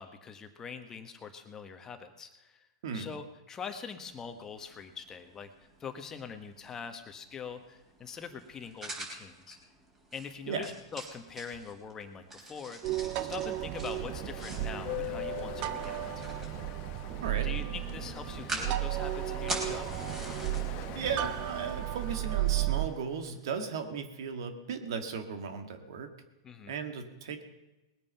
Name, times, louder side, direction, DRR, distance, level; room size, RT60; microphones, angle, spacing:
voice 1, 0.0-2.7 2.9-5.5 5.8-9.6 10.1-16.2 17.4-19.9 26.4-26.7, left 6 dB, 20° left, 7 dB, 1.3 m, -43 dB
sound 1, 4.0-23.0, right 2 dB, 15° right, 4.2 m, -46 dB
Ocean, 12.3-23.4, left 14 dB, 40° left, 1.2 m, -45 dB
sound 2, 12.8-22.9, right 15 dB, 40° right, 0.8 m, -34 dB
voice 2, 20.9-26.1 26.7-27.4, right 6 dB, 65° right, 7 dB, 1.8 m, -36 dB
20.0 x 8.9 x 5.7 m, 1.0 s
hypercardioid pair, 125°, 3 cm